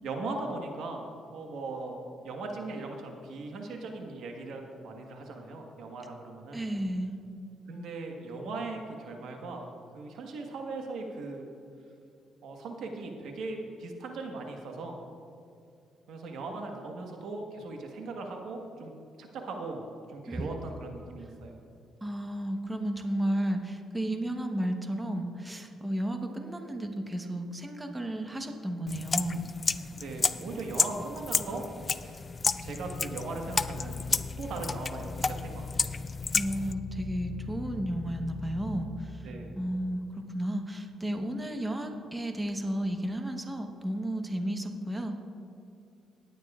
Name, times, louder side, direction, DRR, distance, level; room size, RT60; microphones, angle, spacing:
voice 1, 0.0-2.0 2.2-6.6 7.7-11.4 12.4-15.0 16.1-18.9 19.2-19.8 20.1-21.6 29.8-31.6 31.9-32.3 32.6-34.0 34.4-35.9 39.2-39.5, right 3 dB, 75° right, 2 dB, 1.4 m, -39 dB
voice 2, 6.5-7.2 20.3-20.5 22.0-29.5 36.3-39.3 39.6-45.2, right 1 dB, 15° right, 4 dB, 1.0 m, -33 dB
sound 1, 28.9-36.7, left 4 dB, 35° left, 0.3 m, -32 dB
sound 2, 32.5-38.8, left 4 dB, 70° left, 1.3 m, -40 dB
18.5 x 9.3 x 2.4 m, 2.5 s
cardioid pair, 90°, 0 cm